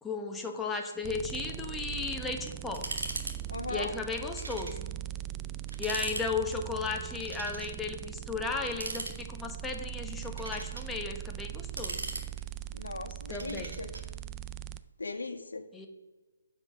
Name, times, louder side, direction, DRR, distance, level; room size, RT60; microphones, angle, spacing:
voice 1, 0.0-2.9 3.7-4.8 5.8-12.0 13.3-13.8 15.7-15.9, left 4 dB, 5° left, 2 dB, 1.1 m, -35 dB
sound 1, 1.0-14.8, right 13 dB, 20° right, 0.4 m, -41 dB
sound 2, 2.7-3.4 3.6-3.7 4.4-4.8 5.2-5.3 5.7-6.3 7.2-7.7 8.6-9.5 10.1-10.9 11.5-12.7 13.4-14.1, right 2 dB, 85° right, 2.0 m, -39 dB
voice 2, 3.5-3.9 12.7-13.9 15.0-15.6, left 3 dB, 85° left, 4 dB, 1.5 m, -38 dB
9.8 x 5.9 x 6.2 m, 1.2 s
figure-of-eight pair, 150°, 0 cm